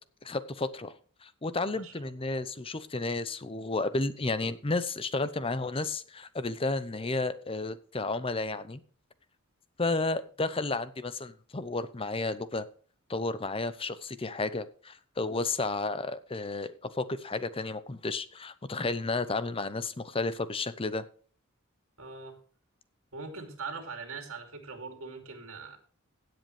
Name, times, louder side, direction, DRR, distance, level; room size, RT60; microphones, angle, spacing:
voice 1, 0.2-0.9 1.2-8.8 9.8-12.7 13.1-21.0, left 3 dB, 25° left, 14 dB, 0.7 m, -32 dB
voice 2, 22.0-22.4 23.1-25.8, right 4 dB, 65° right, 4 dB, 2.8 m, -41 dB
16.5 x 7.9 x 3.3 m, 0.42 s
head